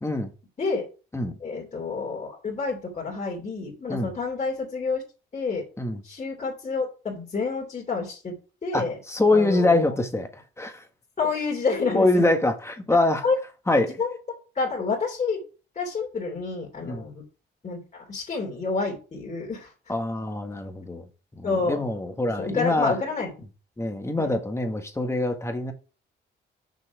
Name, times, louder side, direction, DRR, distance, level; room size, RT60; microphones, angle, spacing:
voice 1, 0.0-0.3 1.1-1.4 3.9-4.1 5.8-6.0 8.7-10.3 10.6-10.8 11.9-13.2 13.7-14.0 16.8-17.0 19.9-21.0 21.4-23.0 23.8-25.7, left 2 dB, 15° left, 1.6 m, -24 dB
voice 2, 1.4-5.0 5.3-5.6 6.0-8.4 8.6-9.0 9.3-10.0 11.2-12.3 13.2-13.3 14.0-15.4 15.7-17.2 17.6-19.7 21.4-21.8 22.4-23.3 24.2-24.3, left 4 dB, 35° left, 3.1 m, -29 dB
6.5 x 6.0 x 4.7 m
cardioid pair, 90°, 20 cm